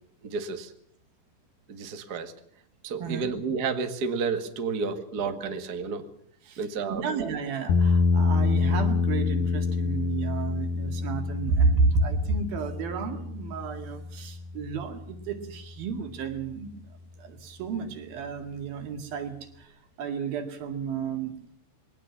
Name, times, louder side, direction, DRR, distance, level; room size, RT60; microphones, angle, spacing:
voice 1, 0.2-0.7 1.7-2.3 2.8-6.1 6.6-7.0, right 5 dB, 45° right, 7 dB, 1.2 m, -31 dB
voice 2, 6.9-16.9 17.2-21.4, right 4 dB, 60° right, 6 dB, 3.8 m, -31 dB
sound 1, 7.7-15.8, left 4 dB, 65° left, 2.8 m, -27 dB
22.0 x 18.5 x 7.4 m, 0.67 s
omnidirectional pair, 4.9 m